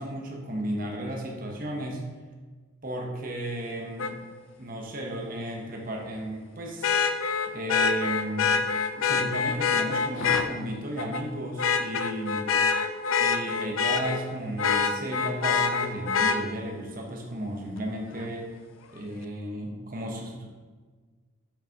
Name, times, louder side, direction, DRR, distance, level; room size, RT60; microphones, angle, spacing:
voice 1, 0.0-2.0 2.8-4.1 4.6-6.9 7.5-8.6 9.0-12.5 13.2-18.5 18.9-20.5, right 1 dB, 45° right, 0 dB, 0.9 m, -34 dB
Vehicle horn car horn honking, 4.0-4.1 6.8-10.5 11.0-11.2 11.6-14.2 14.6-16.4 18.2-18.3, left 5 dB, 85° left, 0.5 m, -25 dB
6.6 x 6.1 x 2.9 m, 1.4 s
head